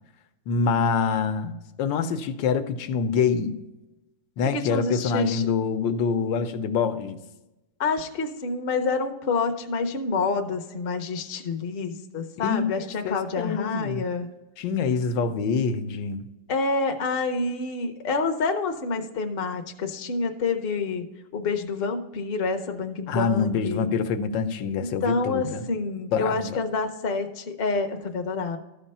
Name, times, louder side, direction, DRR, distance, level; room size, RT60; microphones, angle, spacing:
voice 1, 0.5-3.6 4.4-7.2 12.4-14.1 14.6-16.3 23.1-25.7 26.1-26.6, left 5 dB, 85° left, 9 dB, 1.4 m, -26 dB
voice 2, 4.4-5.5 7.8-14.3 16.5-21.0 21.3-23.9 24.8-28.6, left 4 dB, 50° left, 4 dB, 0.7 m, -28 dB
13.0 x 4.3 x 5.4 m, 1.0 s
omnidirectional pair, 1.9 m